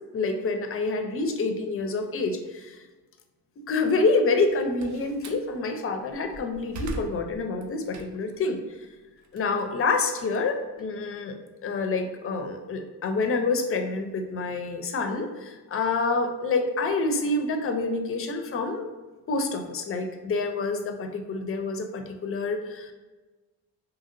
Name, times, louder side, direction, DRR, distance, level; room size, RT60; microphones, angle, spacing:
voice 1, 0.1-2.8 3.7-8.6 9.3-11.3 11.6-18.9 19.3-22.9, left 3 dB, 35° left, 5 dB, 0.4 m, -27 dB
Slam, 4.3-5.5 6.0-8.4 8.8-11.2, right 3 dB, 50° right, 0.4 m, -41 dB
2.8 x 2.8 x 2.4 m, 1.2 s
cardioid pair, 90°, 40 cm